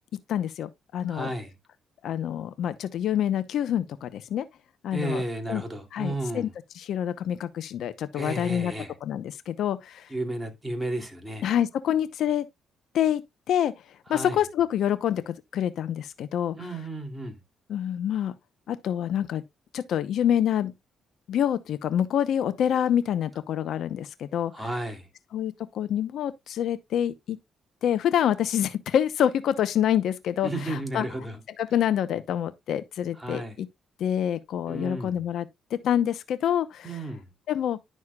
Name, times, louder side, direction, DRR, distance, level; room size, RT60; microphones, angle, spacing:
voice 1, 0.3-1.3 2.0-4.5 4.8-5.2 5.5-5.6 5.9-6.5 6.8-8.7 9.0-10.1 11.4-12.5 12.9-13.7 14.1-16.6 17.7-18.3 18.7-19.4 19.7-20.7 21.3-24.7 25.3-27.4 27.8-31.0 31.6-33.7 34.0-35.5 35.7-36.9 37.5-37.8, left 10 dB, 70° left, 0.8 m, -26 dB
voice 2, 1.1-1.6 4.9-6.5 8.1-8.9 10.1-11.4 14.1-14.4 16.5-17.4 24.5-25.1 30.4-31.4 33.2-33.6 34.7-35.3 36.8-37.3, right 1 dB, 10° right, 2.6 m, -33 dB
11.0 x 6.3 x 2.3 m
cardioid pair, 90°, 0 cm